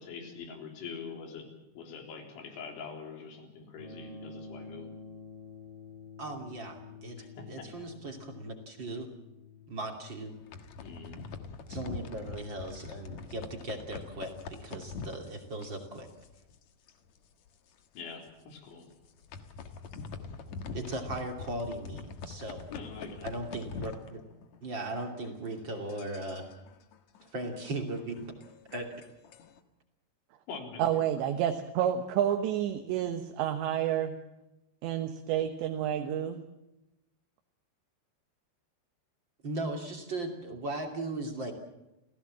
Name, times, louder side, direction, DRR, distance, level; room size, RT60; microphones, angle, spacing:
voice 1, 0.0-1.5 1.8-4.9 7.2-7.9 10.8-11.2 17.9-18.9 22.7-23.4 30.5-31.3, left 5 dB, 90° left, 3 dB, 6.1 m, -44 dB
sound 1, 3.7-13.8, left 4 dB, 30° left, 5.7 m, -50 dB
voice 2, 6.2-9.1 9.7-10.3 11.7-16.1 20.7-22.7 23.2-24.2 24.6-26.5 27.2-28.2 28.7-28.9 39.4-41.5, right 2 dB, 30° right, 3 dB, 2.6 m, -38 dB
sound 2, 10.3-16.6 16.9-17.2 17.5-17.6 18.1-18.3 18.9-24.7 24.9-29.6, left 4 dB, 60° left, 2.0 m, -44 dB
voice 3, 30.8-34.2 34.8-36.4, right 10 dB, 75° right, 6 dB, 3.4 m, -29 dB
29.5 x 16.5 x 7.5 m, 0.96 s
omnidirectional pair, 5.2 m